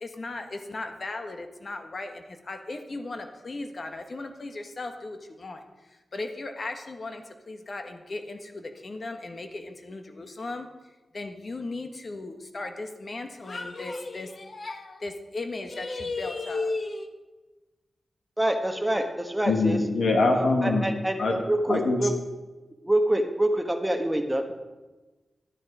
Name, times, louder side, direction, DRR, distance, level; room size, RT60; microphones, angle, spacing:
voice 1, 0.0-10.7 11.1-17.1, left 2 dB, 50° left, 6 dB, 1.4 m, -36 dB
voice 2, 18.4-19.8 20.3-22.1 22.8-24.5, right 1 dB, 10° right, 5 dB, 1.3 m, -26 dB
voice 3, 19.5-20.9 21.2-21.4 21.7-22.0, left 3 dB, 85° left, 2 dB, 2.1 m, -23 dB
13.0 x 10.5 x 4.9 m, 1.2 s
wide cardioid pair, 80°, 0 cm